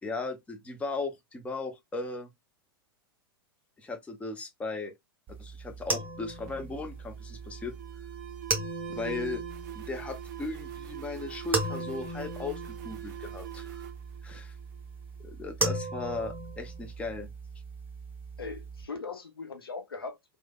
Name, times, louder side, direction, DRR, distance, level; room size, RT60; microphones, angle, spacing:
voice 1, 0.0-2.3 3.8-4.9 5.4-7.7 8.9-9.4 9.7-13.9 14.2-14.6 15.2-17.3, left 3 dB, 10° left, 0.5 m, -37 dB
sound 1, 5.3-18.8, right 2 dB, 15° right, 0.9 m, -37 dB
Alarm, 6.5-15.1, right 12 dB, 50° right, 0.5 m, -43 dB
voice 2, 18.4-20.4, left 4 dB, 75° left, 0.6 m, -40 dB
3.1 x 2.0 x 2.2 m
figure-of-eight pair, 95°, 12 cm